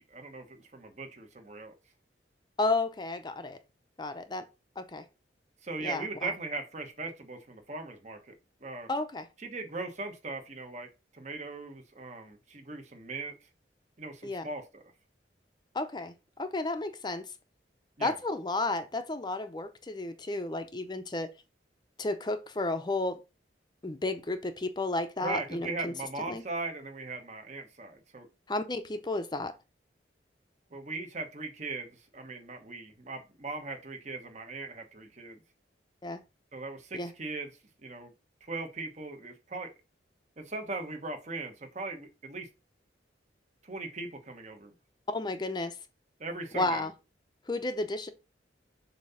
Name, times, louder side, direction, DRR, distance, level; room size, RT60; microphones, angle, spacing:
voice 1, 0.0-1.7 5.6-8.3 8.6-8.9 9.4-13.4 14.0-14.8 18.0-18.1 25.2-28.3 30.7-35.4 36.5-37.5 37.8-38.1 38.4-39.7 40.4-42.5 43.6-44.7 46.2-46.9, right 3 dB, 40° right, 1.1 m, -39 dB
voice 2, 2.6-3.6 4.0-4.4 4.8-5.0 5.8-6.3 8.9-9.3 14.2-14.5 15.7-17.3 18.0-21.3 22.0-23.2 23.8-25.9 26.3-26.4 28.5-29.5 36.0-36.2 36.9-37.1 45.1-45.7 46.5-46.9 47.5-48.1, left 2 dB, 25° left, 0.6 m, -32 dB
7.3 x 2.8 x 5.6 m
head